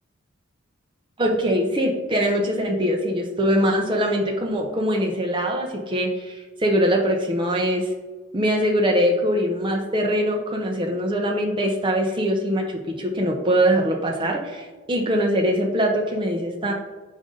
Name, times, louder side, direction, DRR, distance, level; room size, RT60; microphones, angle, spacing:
voice 1, 1.2-7.9 8.3-16.7, equal, 25° right, 1 dB, 0.7 m, -22 dB
5.3 x 5.2 x 3.8 m, 1.3 s
head